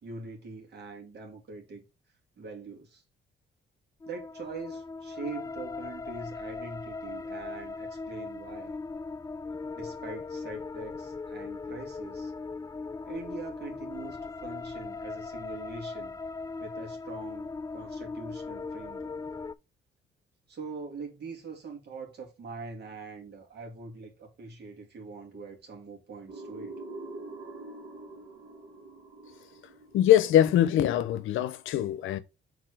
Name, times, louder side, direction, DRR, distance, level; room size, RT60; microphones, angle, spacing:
voice 1, 0.0-1.8 2.4-3.0 4.1-8.8 9.7-12.3 13.1-16.2 16.6-19.2 20.5-26.8, right 4 dB, 55° right, 2.4 m, -43 dB
sound 1, 4.0-19.5, left 4 dB, 15° left, 0.4 m, -39 dB
sound 2, 26.3-31.0, right 2 dB, 80° right, 1.9 m, -45 dB
voice 2, 29.9-32.2, left 11 dB, 85° left, 0.7 m, -23 dB
4.9 x 4.0 x 4.8 m
cardioid pair, 90°, 20 cm